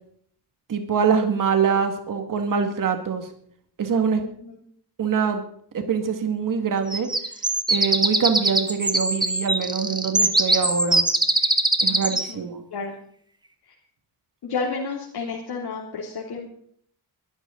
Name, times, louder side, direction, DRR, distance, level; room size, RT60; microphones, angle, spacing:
voice 1, 0.7-3.3 3.8-4.2 5.0-5.4 5.7-7.1 7.7-11.1 11.8-12.6, right 6 dB, 55° right, 6 dB, 2.2 m, -24 dB
voice 2, 4.2-4.6 12.3-13.0 13.7-13.8 14.4-16.5, left 4 dB, 75° left, -2 dB, 3.2 m, -31 dB
sound 1, 6.9-12.3, right 2 dB, 10° right, 1.4 m, -22 dB
22.5 x 13.0 x 4.0 m, 0.62 s
wide cardioid pair, 175°, 39 cm